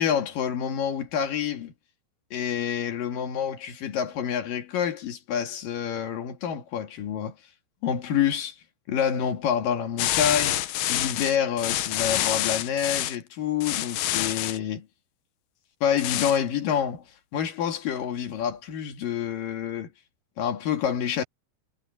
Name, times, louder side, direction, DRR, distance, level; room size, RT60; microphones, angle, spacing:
voice 1, 0.0-1.7 2.3-7.3 7.8-8.5 8.9-14.9 15.8-17.0 17.3-19.9 20.4-21.2, left 8 dB, 60° left, 3.2 m, -27 dB
sound 1, 10.0-13.2 13.6-14.6 16.0-16.4, left 13 dB, 75° left, 2.2 m, -27 dB
omnidirectional pair, 5.0 m